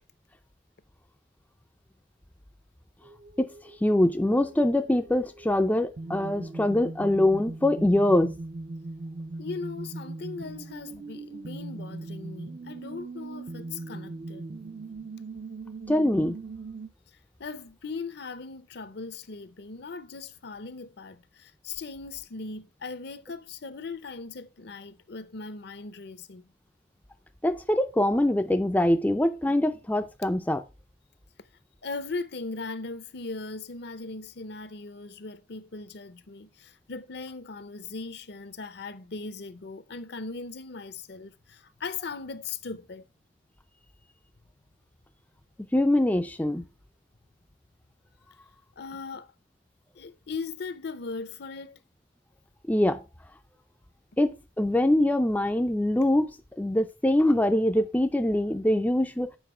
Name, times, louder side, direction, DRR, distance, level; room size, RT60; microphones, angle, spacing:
sound 1, 3.0-16.9, right 3 dB, 45° right, 0.5 m, -40 dB
voice 1, 3.8-8.3 15.9-16.4 27.4-30.6 45.7-46.6 52.7-53.0 54.2-59.3, left 1 dB, 10° left, 0.4 m, -24 dB
voice 2, 9.4-14.5 17.4-26.5 31.8-43.1 48.8-49.3 49.9-51.8, left 4 dB, 55° left, 0.7 m, -39 dB
8.0 x 4.9 x 4.9 m
head